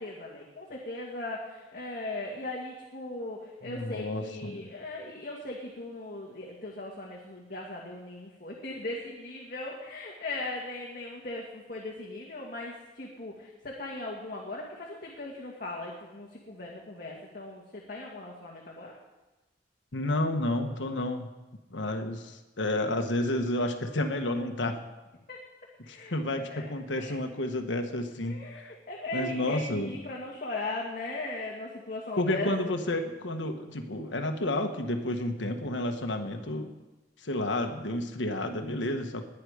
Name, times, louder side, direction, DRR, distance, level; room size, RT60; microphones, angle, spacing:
voice 1, 0.0-18.9 25.3-25.4 25.8-26.6 27.0-27.2 28.2-32.7, left 2 dB, 50° left, -2 dB, 2.0 m, -38 dB
voice 2, 3.6-4.7 19.9-21.3 21.7-24.8 25.9-28.7 29.1-29.9 32.2-36.7 37.2-39.2, left 1 dB, 85° left, 5 dB, 1.4 m, -31 dB
20.5 x 10.0 x 5.0 m, 1.1 s
head